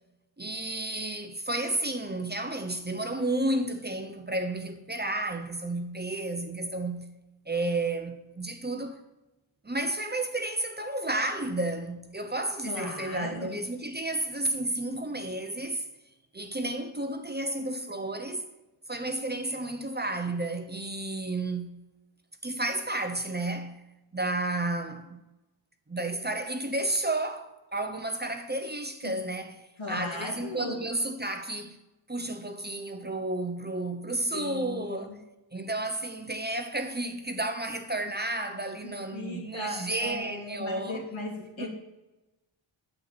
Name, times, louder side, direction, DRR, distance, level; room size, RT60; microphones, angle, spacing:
voice 1, 0.4-7.1 7.5-9.0 9.6-15.9 16.3-18.4 18.9-21.8 22.4-23.8 24.1-25.2 25.9-31.8 32.1-35.2 35.5-41.0 41.6-41.7, right 2 dB, 20° right, 0.7 m, -32 dB
voice 2, 12.6-13.6 29.0-29.2 29.8-30.8 34.3-35.1 38.8-41.7, left 2 dB, 80° left, 2.5 m, -37 dB
8.9 x 7.6 x 4.1 m
wide cardioid pair, 120°, 46 cm